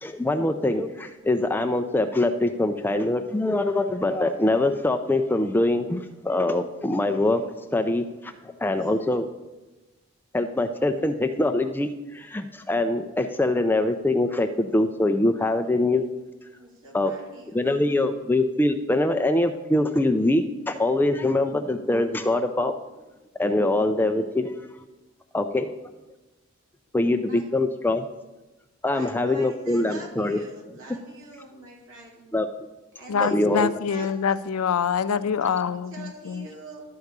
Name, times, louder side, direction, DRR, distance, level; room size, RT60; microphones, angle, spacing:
voice 1, 0.0-7.4 7.7-8.3 8.6-9.3 10.3-16.0 16.9-17.1 17.5-22.7 23.4-24.5 25.3-25.7 26.9-28.1 28.8-30.4 32.3-32.5 33.2-33.7, left 2 dB, 10° left, 6 dB, 0.3 m, -23 dB
voice 2, 16.6-17.8 27.3-27.4 28.9-32.2 32.9-34.2 34.9-35.0 35.4-35.6 35.9-36.8, right 2 dB, 65° right, -3 dB, 2.9 m, -44 dB
voice 3, 33.1-36.5, left 6 dB, 80° left, 13 dB, 0.5 m, -25 dB
11.5 x 4.7 x 6.6 m, 1.1 s
head